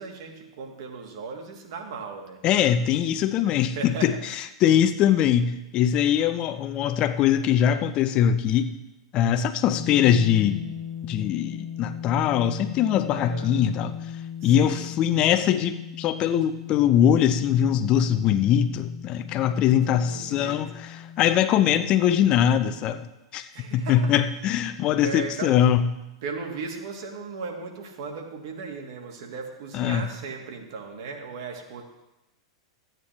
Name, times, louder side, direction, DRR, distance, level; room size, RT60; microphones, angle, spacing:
voice 1, 0.0-2.9 3.6-4.2 6.1-6.2 13.1-13.5 14.4-14.9 19.8-20.6 23.5-24.1 25.0-25.6 26.2-31.8, right 4 dB, 55° right, 2 dB, 1.8 m, -37 dB
voice 2, 2.4-4.1 4.6-8.7 9.1-10.6 11.1-14.0 14.4-20.7 21.2-23.0 23.3-23.5 23.7-25.8 29.7-30.1, left 10 dB, 35° left, 11 dB, 0.7 m, -22 dB
sound 1, 9.7-22.8, left 8 dB, 65° left, 1.4 m, -38 dB
14.0 x 9.0 x 3.3 m, 0.96 s
figure-of-eight pair, 95°, 3 cm